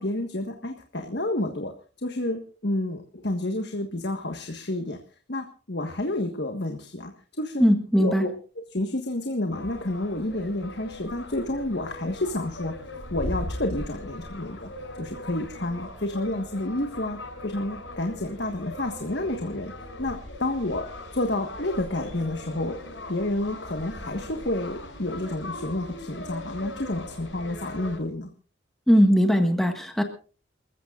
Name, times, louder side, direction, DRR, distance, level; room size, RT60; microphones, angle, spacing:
voice 1, 0.0-1.7 2.0-5.0 5.3-7.1 7.4-7.6 8.0-8.3 8.7-12.7 13.1-14.7 15.0-22.8 23.1-28.3, left 1 dB, 60° left, 4 dB, 1.5 m, -30 dB
voice 2, 7.6-8.2 28.9-30.0, equal, ahead, 4 dB, 1.6 m, -19 dB
sound 1, 9.5-28.0, left 1 dB, 85° left, 7.3 m, -39 dB
29.5 x 14.5 x 2.5 m, 0.37 s
head